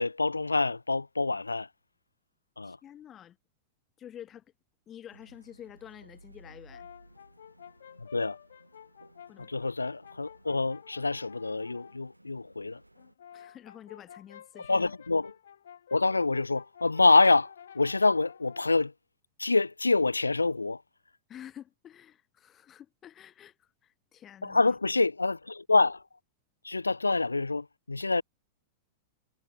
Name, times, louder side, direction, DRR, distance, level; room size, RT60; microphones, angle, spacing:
voice 1, 0.0-1.7 2.6-2.8 8.0-8.4 9.4-12.8 14.7-15.3 15.9-18.9 19.4-20.8 24.4-26.0 26.6-28.2, left 3 dB, 80° left, 0.7 m, -26 dB
voice 2, 2.6-3.4 4.0-4.4 4.9-6.9 9.3-9.5 13.3-14.9 21.3-24.7, left 10 dB, 25° left, 4.9 m, -49 dB
sound 1, 5.1-13.1, right 1 dB, 85° right, 2.3 m, -58 dB
Brass instrument, 6.4-12.0 12.9-18.8, left 9 dB, 65° left, 1.3 m, -51 dB
figure-of-eight pair, 95°, 0 cm